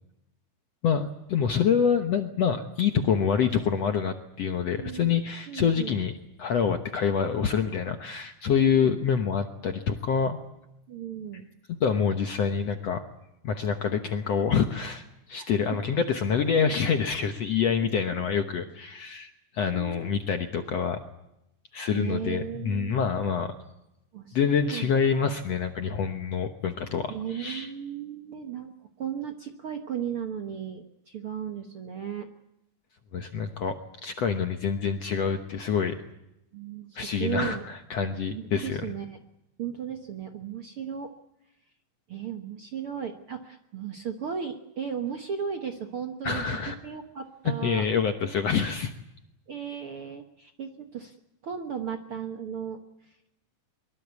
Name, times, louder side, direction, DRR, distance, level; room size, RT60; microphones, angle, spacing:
voice 1, 0.8-6.1 6.4-10.4 11.8-13.0 13.4-21.0 21.7-23.5 24.3-27.7 33.1-36.0 37.0-38.9 46.2-46.8 47.5-48.9, left 6 dB, 60° left, 6 dB, 1.7 m, -26 dB
voice 2, 4.7-5.1 5.5-6.0 8.7-9.0 10.9-11.4 19.7-20.3 21.9-23.1 24.1-24.9 25.2-25.4 27.1-32.3 36.5-37.6 38.3-39.2 39.6-41.1 42.1-46.4 46.8-47.8 49.5-51.1 51.4-52.8, right 8 dB, 55° right, 5 dB, 1.5 m, -35 dB
23.5 x 23.0 x 8.4 m, 0.87 s
omnidirectional pair, 4.3 m